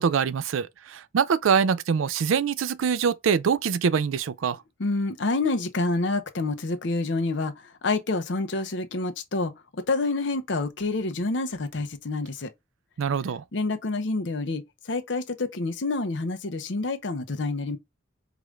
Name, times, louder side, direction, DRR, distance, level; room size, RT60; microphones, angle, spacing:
voice 1, 0.0-4.6 13.0-13.4, right 6 dB, 80° right, 0.4 m, -24 dB
voice 2, 4.8-12.5 13.5-17.8, left 3 dB, 60° left, 0.7 m, -28 dB
4.8 x 2.5 x 3.1 m
head